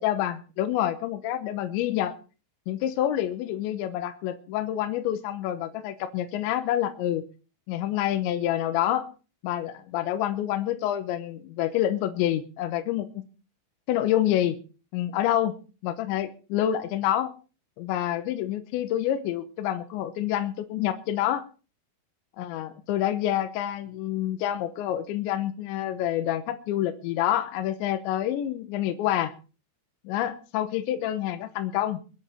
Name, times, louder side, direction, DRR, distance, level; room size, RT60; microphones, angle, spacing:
voice 1, 0.0-2.1 2.7-7.2 7.7-9.1 9.4-13.2 13.9-14.6 14.9-15.6 15.8-17.3 17.8-21.4 22.4-29.3 30.0-32.0, left 12 dB, 75° left, 8 dB, 3.1 m, -27 dB
23.0 x 9.8 x 4.3 m, 0.35 s
omnidirectional pair, 5.7 m